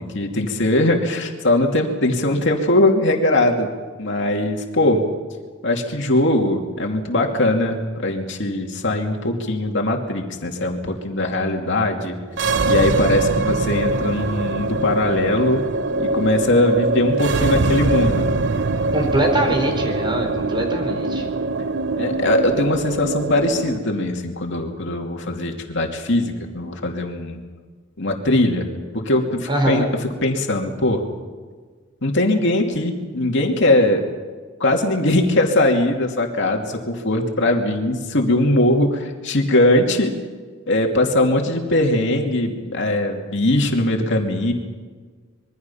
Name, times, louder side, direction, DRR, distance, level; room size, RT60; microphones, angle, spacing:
voice 1, 0.0-3.7 4.0-5.0 5.6-12.2 12.6-15.6 16.0-18.3 22.0-27.4 28.0-28.7 28.9-29.9 30.2-31.0 32.0-34.0 34.6-40.1 40.7-44.5, left 1 dB, 60° left, 2 dB, 2.6 m, -20 dB
sound 1, 12.3-23.8, right 2 dB, 60° right, 0.7 m, -23 dB
voice 2, 18.9-21.3 29.5-29.9, right 1 dB, 25° right, 3 dB, 4.5 m, -22 dB
26.0 x 22.5 x 5.7 m, 1.5 s
head